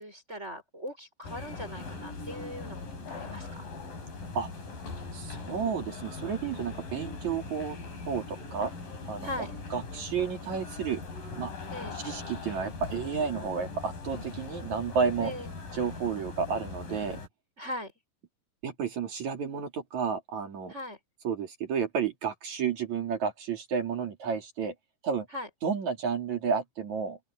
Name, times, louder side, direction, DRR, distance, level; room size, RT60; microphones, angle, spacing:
voice 1, 0.0-2.8 3.1-3.7 9.2-9.5 11.7-12.0 15.2-15.5 17.6-17.9 20.7-21.0 25.3-25.5, left 1 dB, 15° right, 6.4 m, -39 dB
sound 1, 1.2-17.3, left 3 dB, 50° left, 7.7 m, -40 dB
voice 2, 5.1-7.8 8.1-8.7 9.1-9.3 9.7-11.0 11.4-11.5 11.9-15.3 15.7-17.2 18.6-20.7 21.2-24.7 25.0-25.3 25.6-27.2, right 6 dB, 45° right, 3.7 m, -31 dB
open air
omnidirectional pair, 5.2 m